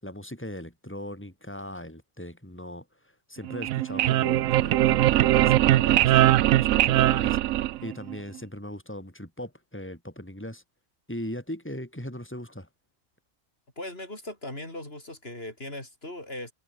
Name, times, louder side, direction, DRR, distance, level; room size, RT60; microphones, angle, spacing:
voice 1, 0.0-2.8 3.3-7.4 7.8-10.6 11.1-12.7, left 1 dB, 10° left, 6.6 m, -39 dB
sound 1, 3.4-8.2, right 14 dB, 80° right, 1.0 m, -21 dB
voice 2, 13.8-16.5, left 1 dB, 45° left, 6.3 m, -38 dB
omnidirectional pair, 1.4 m